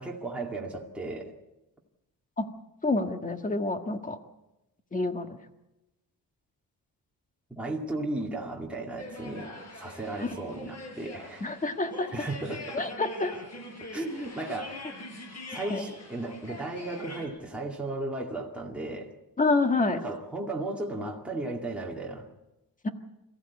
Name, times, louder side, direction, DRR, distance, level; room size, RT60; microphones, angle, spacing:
voice 1, 0.0-1.3 7.5-11.5 12.1-12.9 13.9-14.9 15.5-19.1 19.9-22.3, right 2 dB, 5° right, -2 dB, 2.3 m, -35 dB
voice 2, 2.8-4.2 4.9-5.4 10.2-10.3 11.4-12.1 12.7-13.3 15.7-15.9 19.4-20.0 22.8-22.9, left 3 dB, 20° left, 7 dB, 1.5 m, -27 dB
sound 1, 9.0-17.3, left 1 dB, 50° left, 6.3 m, -43 dB
24.0 x 15.0 x 8.4 m, 0.96 s
wide cardioid pair, 170°, 35 cm